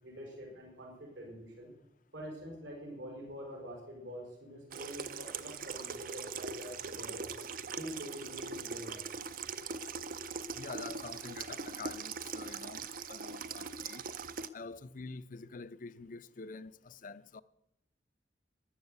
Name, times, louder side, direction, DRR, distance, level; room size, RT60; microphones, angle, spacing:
voice 1, 0.0-1.7 2.1-7.3 7.7-9.1, equal, 85° right, 5.0 m, -46 dB
Water tap faucet / Sink (filling or washing), 4.7-14.5, right 5 dB, 50° right, 0.6 m, -41 dB
voice 2, 10.6-14.0 14.5-17.4, left 4 dB, 45° left, 0.6 m, -47 dB
13.5 x 10.5 x 8.1 m
head